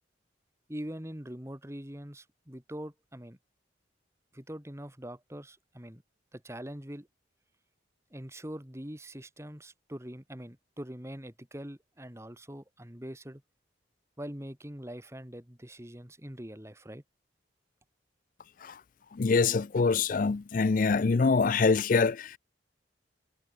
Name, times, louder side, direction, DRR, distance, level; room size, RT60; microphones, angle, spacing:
voice 1, 0.7-3.4 4.3-6.0 6.3-7.1 8.1-13.4 14.2-17.0, equal, 15° right, 2.3 m, -43 dB
voice 2, 19.1-22.4, left 4 dB, 45° left, 0.4 m, -25 dB
head